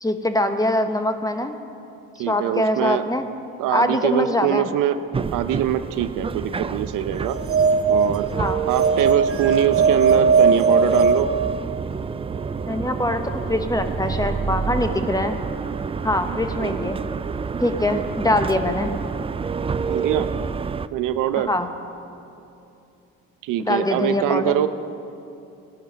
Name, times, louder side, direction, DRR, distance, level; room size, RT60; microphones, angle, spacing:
voice 1, 0.0-1.6 2.3-3.2 3.7-4.7 8.4-8.6 12.7-15.4 16.0-17.0 17.6-18.9 21.4-21.7 23.6-24.6, left 1 dB, 10° left, 7 dB, 1.1 m, -23 dB
voice 2, 2.2-3.0 3.6-5.0 5.3-7.4 7.9-8.3 8.7-11.3 16.3-16.8 17.9-18.0 19.8-20.3 20.9-21.5 23.4-24.7, right 11 dB, 80° right, 11 dB, 0.7 m, -23 dB
sound 1, 4.0-14.5, left 2 dB, 80° left, 4.0 m, -47 dB
sound 2, 5.1-20.9, right 5 dB, 20° right, 0.4 m, -28 dB
sound 3, 7.2-12.1, right 5 dB, 45° right, 0.8 m, -20 dB
18.0 x 11.0 x 6.3 m, 2.7 s
cardioid pair, 85°, 31 cm